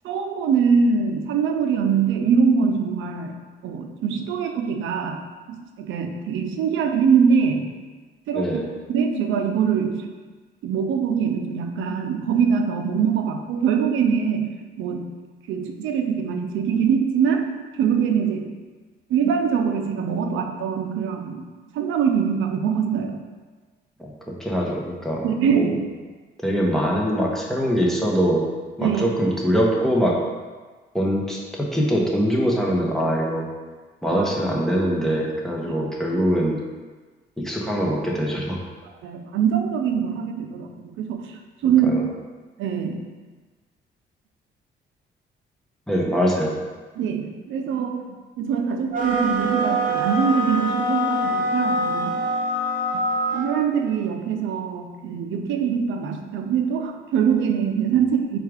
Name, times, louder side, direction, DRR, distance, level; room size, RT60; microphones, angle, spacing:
voice 1, 0.0-3.4 3.6-7.7 8.3-8.6 8.9-10.1 10.6-15.1 15.5-18.5 19.1-21.5 21.7-23.2 25.2-25.8 28.8-29.1 34.1-34.3 38.8-41.9 42.6-43.0 46.9-52.2 53.3-58.4, right 6 dB, 80° right, 5 dB, 0.5 m, -23 dB
voice 2, 24.0-25.3 25.5-25.7 26.4-28.5 28.8-30.2 30.9-33.5 34.0-36.6 37.4-38.6 41.6-42.0 45.9-46.5, equal, ahead, -2 dB, 0.8 m, -23 dB
sound 1, 48.9-53.6, equal, 45° right, 0.8 m, -24 dB
4.5 x 2.4 x 4.9 m, 1.4 s
cardioid pair, 90°, 20 cm